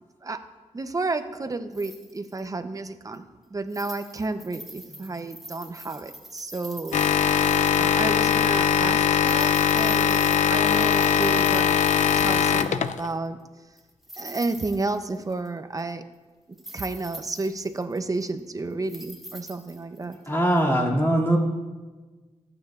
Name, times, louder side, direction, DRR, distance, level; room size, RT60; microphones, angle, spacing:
voice 1, 0.7-3.2 3.5-7.0 7.8-11.8 12.2-13.4 14.2-16.0 16.5-20.2, right 3 dB, 30° right, 9 dB, 0.6 m, -31 dB
sound 1, 1.7-2.4 3.1-3.2 3.7-8.3 8.5-8.7 9.2-12.8 13.8-15.5 15.8-15.9 16.5-18.4 18.9-20.2 20.6-20.7, equal, ahead, 2.2 m, -43 dB
sound 2, 6.9-13.1, left 8 dB, 85° left, 0.5 m, -21 dB
voice 2, 20.3-21.4, right 1 dB, 20° left, -3 dB, 2.4 m, -21 dB
25.5 x 8.8 x 2.4 m, 1.3 s
wide cardioid pair, 110°, 12 cm